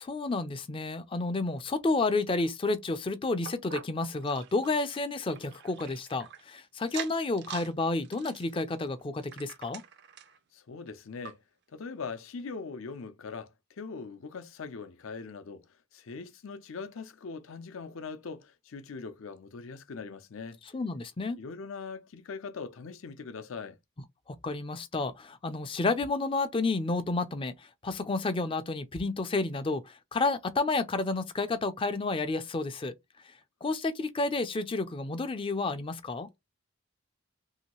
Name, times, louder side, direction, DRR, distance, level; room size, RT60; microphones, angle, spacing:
voice 1, 0.0-9.8 20.7-21.4 24.3-32.9 33.6-36.3, left 3 dB, 25° left, 0.4 m, -30 dB
sound 1, 3.5-6.4 6.8-7.7 8.0-10.4 10.9-11.0 11.2-11.3 12.0-12.1, right 8 dB, 50° right, 0.4 m, -44 dB
voice 2, 10.5-11.4 11.7-20.6 21.4-23.8, left 4 dB, 70° left, 0.5 m, -41 dB
3.0 x 2.7 x 2.9 m
head